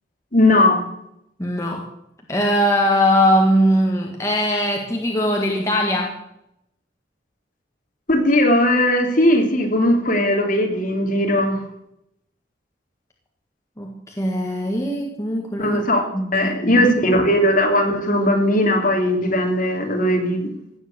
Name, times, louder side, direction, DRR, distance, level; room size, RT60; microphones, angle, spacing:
voice 1, 0.3-0.8 8.1-11.6 15.6-16.1 16.3-20.5, left 1 dB, 45° left, 2 dB, 3.0 m, -18 dB
voice 2, 1.4-1.9 2.3-6.2 13.8-15.8 16.1-16.9, equal, 15° left, 0 dB, 1.7 m, -20 dB
16.5 x 7.5 x 8.5 m, 0.79 s
head